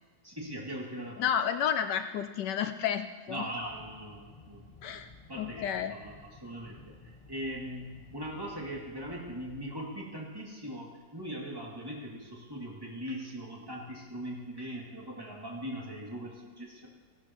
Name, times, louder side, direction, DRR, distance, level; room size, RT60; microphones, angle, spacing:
voice 1, 0.2-1.2 3.3-4.6 4.9-5.0 5.3-16.9, equal, 10° right, -4 dB, 2.3 m, -40 dB
voice 2, 1.2-3.7 4.8-5.1 5.3-5.9, left 9 dB, 75° left, 9 dB, 1.1 m, -31 dB
sound 1, 3.6-9.6, left 3 dB, 35° left, 0.6 m, -54 dB
15.5 x 13.0 x 3.0 m, 1.3 s
omnidirectional pair, 2.1 m